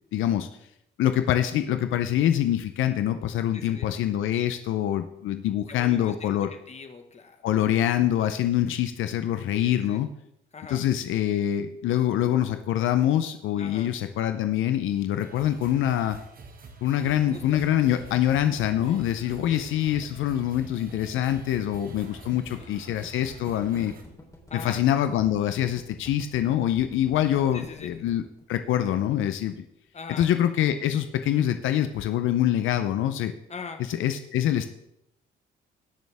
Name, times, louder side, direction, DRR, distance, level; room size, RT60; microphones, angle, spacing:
voice 1, 0.1-0.5 1.0-6.5 7.4-10.1 10.7-16.2 16.8-23.9 24.5-28.2 28.5-29.6 30.2-33.3 33.9-34.7, left 11 dB, 80° left, 9 dB, 0.7 m, -25 dB
voice 2, 3.5-3.9 5.7-7.4 9.6-10.0 10.5-10.8 13.6-13.9 16.9-17.8 18.8-19.1 19.5-19.8 22.5-22.7 24.5-24.9 27.5-27.9 29.9-30.3 33.5-33.8, left 5 dB, 35° left, 6 dB, 1.5 m, -42 dB
sound 1, 15.2-24.0, right 3 dB, 45° right, 1.8 m, -47 dB
sound 2, 17.1-29.3, left 1 dB, 15° left, 3.5 m, -47 dB
19.0 x 6.4 x 3.5 m, 0.80 s
cardioid pair, 90°, 20 cm